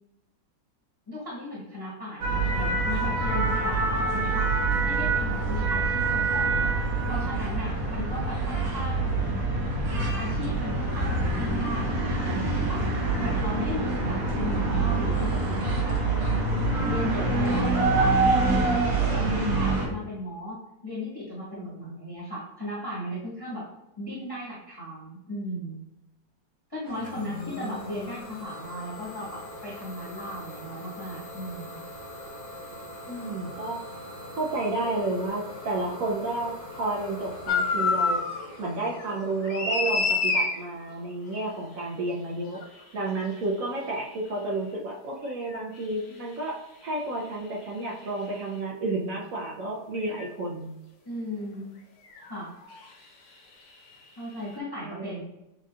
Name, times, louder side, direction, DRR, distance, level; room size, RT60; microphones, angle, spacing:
voice 1, 1.1-4.5 4.8-6.7 7.1-9.3 10.2-12.8 13.2-16.0 16.3-16.5 16.9-18.2 19.1-23.7 24.0-25.8 26.7-31.8 51.0-51.7 52.3-52.5 54.2-55.2, left 1 dB, 15° left, -7 dB, 1.3 m, -36 dB
sound 1, 2.2-19.9, right 3 dB, 80° right, 1.8 m, -25 dB
voice 2, 21.5-22.0 27.2-27.9 33.1-33.8 34.4-38.2 38.6-50.7 54.8-55.2, right 2 dB, 65° right, -2 dB, 0.8 m, -31 dB
Idling / Domestic sounds home sounds, 26.8-42.4, left 1 dB, 30° left, 1.0 m, -43 dB
sound 2, 37.5-38.4 38.8-40.6 42.5-42.6 45.5-45.6 48.4-48.5 50.1-50.3 52.1-52.3 52.6-52.8, left 4 dB, 75° left, 0.5 m, -26 dB
7.2 x 2.8 x 2.4 m, 0.91 s
omnidirectional pair, 1.9 m